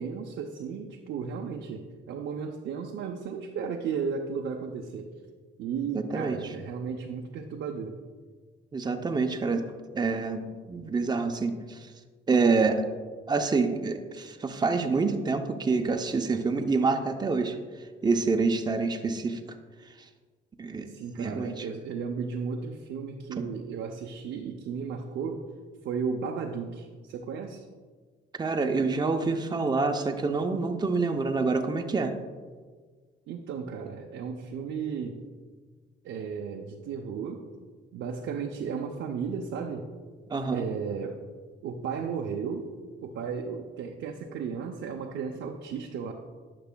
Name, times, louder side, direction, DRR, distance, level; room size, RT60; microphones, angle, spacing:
voice 1, 0.0-5.1 5.6-8.0 20.9-25.4 25.8-27.6 33.3-35.2 36.0-37.4 37.9-39.9 40.5-41.2 41.6-42.7 43.0-46.1, right 6 dB, 75° right, 2 dB, 0.6 m, -34 dB
voice 2, 5.9-6.5 8.7-9.6 9.9-11.9 12.3-12.8 13.3-17.6 18.0-19.4 20.6-20.9 21.2-21.7 28.4-32.1 40.3-40.6, right 4 dB, 20° right, 5 dB, 0.6 m, -27 dB
10.0 x 5.9 x 2.2 m, 1.5 s
cardioid pair, 90°, 20 cm